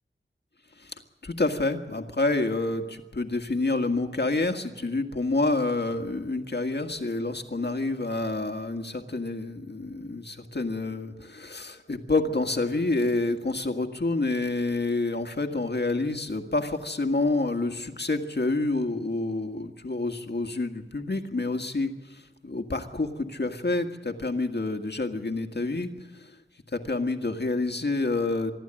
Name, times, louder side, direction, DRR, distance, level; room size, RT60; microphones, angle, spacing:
voice 1, 1.2-21.9 22.4-25.9 26.7-28.5, left 2 dB, 55° left, 6 dB, 1.8 m, -28 dB
26.0 x 11.5 x 9.0 m, 1.2 s
wide cardioid pair, 45°, 21 cm